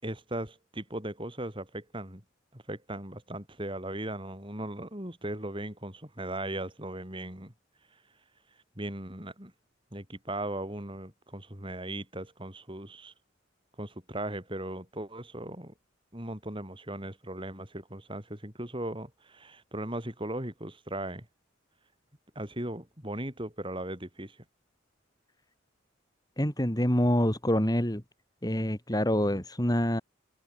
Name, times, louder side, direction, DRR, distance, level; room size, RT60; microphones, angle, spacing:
voice 1, 0.0-2.2 2.5-7.5 8.8-9.5 9.9-13.1 13.8-15.7 16.1-21.3 22.4-24.4, right 1 dB, 25° right, 5.6 m, -38 dB
voice 2, 26.4-28.0 28.4-30.0, equal, 20° left, 2.8 m, -26 dB
head